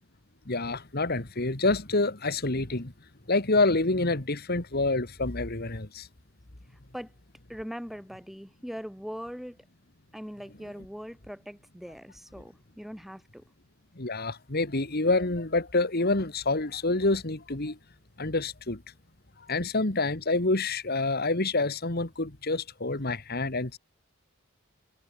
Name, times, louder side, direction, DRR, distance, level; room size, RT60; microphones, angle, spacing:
voice 1, 0.5-2.9 3.3-6.1 14.0-17.8 18.2-18.8 19.5-23.8, left 2 dB, 50° left, 2.1 m, -27 dB
voice 2, 6.7-7.1 7.5-9.6 10.1-13.4, equal, ahead, 4.1 m, -41 dB
head